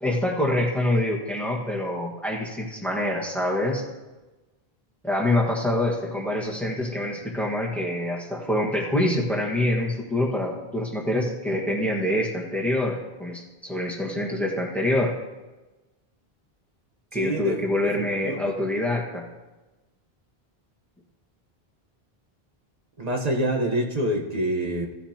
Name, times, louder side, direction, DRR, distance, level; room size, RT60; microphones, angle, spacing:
voice 1, 0.0-3.8 5.0-15.1 17.1-19.2, left 1 dB, ahead, -3 dB, 1.5 m, -26 dB
voice 2, 17.1-17.7 18.2-18.5 23.0-24.9, right 1 dB, 40° right, 1 dB, 1.3 m, -26 dB
16.0 x 9.7 x 2.9 m, 1.1 s
omnidirectional pair, 1.0 m